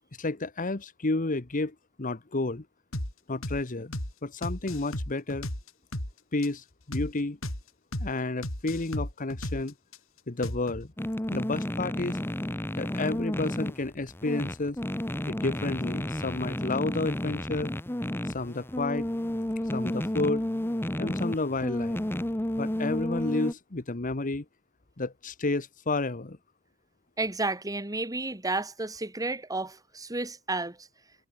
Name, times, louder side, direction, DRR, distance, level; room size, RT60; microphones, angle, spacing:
voice 1, 0.2-2.6 3.3-3.9 4.2-5.5 6.3-7.4 8.0-9.7 10.3-10.9 11.3-12.2 12.8-14.8 15.3-17.7 18.3-19.1 19.7-20.5 21.0-22.0 22.6-24.4 25.0-26.4, left 2 dB, 40° left, 1.2 m, -31 dB
sound 1, 2.9-3.1 3.4-3.6 3.9-4.1 4.4-6.1 6.4-6.5 6.9-7.1 7.4-7.6 7.9-8.1 8.4-10.0 10.4-10.8, left 1 dB, 75° left, 5.5 m, -34 dB
sound 2, 11.0-23.5, left 1 dB, 10° left, 0.8 m, -32 dB
voice 2, 27.2-30.9, right 2 dB, 15° right, 2.4 m, -32 dB
head